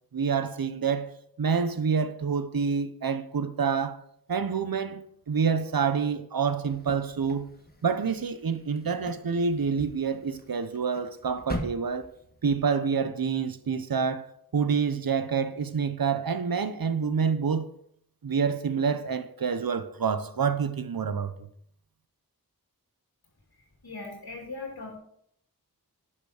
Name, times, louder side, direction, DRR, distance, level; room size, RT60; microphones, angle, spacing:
voice 1, 0.1-1.1 1.4-4.0 4.3-7.5 7.8-12.1 12.4-17.7 18.2-21.5, right 6 dB, 70° right, 0.8 m, -27 dB
sound 1, 6.7-12.6, left 1 dB, 25° left, 1.4 m, -42 dB
voice 2, 23.6-25.0, left 3 dB, 75° left, 2.6 m, -40 dB
11.0 x 5.9 x 4.9 m
wide cardioid pair, 45°, 37 cm